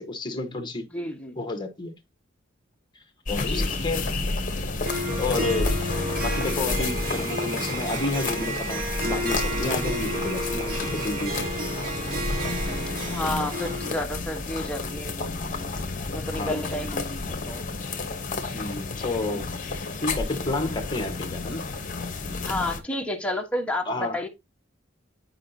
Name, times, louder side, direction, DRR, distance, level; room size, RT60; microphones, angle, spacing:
voice 1, 0.0-0.9 1.4-1.9 3.3-4.1 5.2-5.9 6.2-11.5 13.6-13.8 16.4-16.7 18.5-19.5 20.0-21.7 23.9-24.2, left 2 dB, 25° left, 1.3 m, -31 dB
voice 2, 0.9-1.4 3.4-4.1 4.4-4.5 12.8-15.3 16.1-17.6 22.4-24.3, left 1 dB, 5° left, 1.2 m, -31 dB
sound 1, 3.3-22.8, left 3 dB, 45° left, 1.1 m, -30 dB
Harp, 4.8-13.9, equal, 50° right, 1.6 m, -32 dB
sound 2, 6.3-11.3, right 5 dB, 80° right, 1.2 m, -41 dB
9.7 x 4.8 x 2.8 m
head